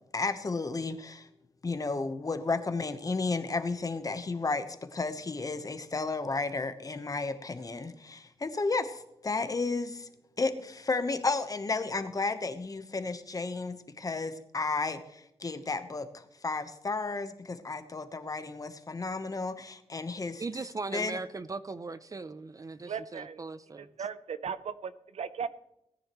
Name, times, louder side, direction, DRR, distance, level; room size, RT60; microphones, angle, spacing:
voice 1, 0.1-1.3 1.6-10.1 10.4-20.4 20.9-21.2, left 3 dB, 30° left, 10 dB, 1.0 m, -33 dB
voice 2, 20.4-23.9, right 3 dB, 30° right, 13 dB, 0.5 m, -39 dB
voice 3, 22.9-23.4 23.8-25.5, right 7 dB, 70° right, 13 dB, 0.7 m, -37 dB
18.5 x 9.9 x 3.1 m, 0.81 s
wide cardioid pair, 105°, 11 cm